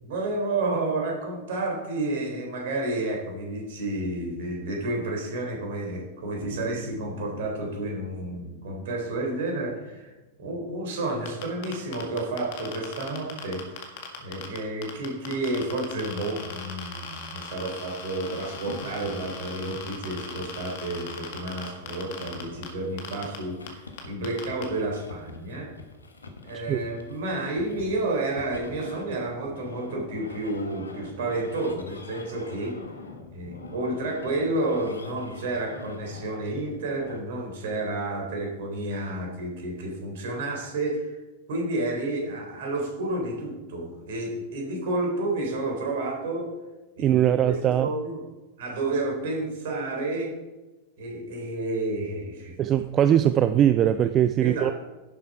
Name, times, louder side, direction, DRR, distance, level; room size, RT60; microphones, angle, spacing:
voice 1, 0.0-10.1 10.4-13.9 14.2-25.7 26.4-32.8 33.3-41.1 41.5-46.5 47.0-47.5 47.8-48.2 48.6-50.3 51.0-52.5 54.4-54.7, right 2 dB, 55° right, 0 dB, 3.7 m, -30 dB
Bass guitar, 6.4-10.0, left 2 dB, 5° right, 2.8 m, -43 dB
Geiger Counter Hotspot (High), 11.3-14.6 14.8-22.7 23.0-23.4 23.7-23.8 24.0-24.6, left 6 dB, 50° left, 2.0 m, -38 dB
sound 1, 18.2-37.2, left 3 dB, 75° left, 1.3 m, -44 dB
voice 2, 47.0-47.9 52.6-54.7, right 10 dB, 30° right, 12 dB, 0.4 m, -21 dB
11.0 x 7.3 x 4.9 m, 1.2 s
figure-of-eight pair, 90°, 0 cm